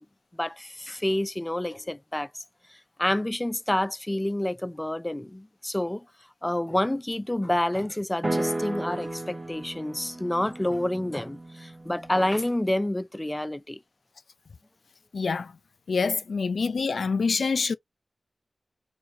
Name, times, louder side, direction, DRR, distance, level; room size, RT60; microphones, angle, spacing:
voice 1, 0.4-2.3 3.0-6.0 6.4-13.8, left 1 dB, 15° left, 0.4 m, -28 dB
sound 1, 8.2-12.3, right 1 dB, 35° right, 0.6 m, -34 dB
voice 2, 15.1-15.5 15.9-17.7, left 4 dB, 90° left, 0.5 m, -26 dB
4.4 x 2.3 x 2.7 m
wide cardioid pair, 85°, 0 cm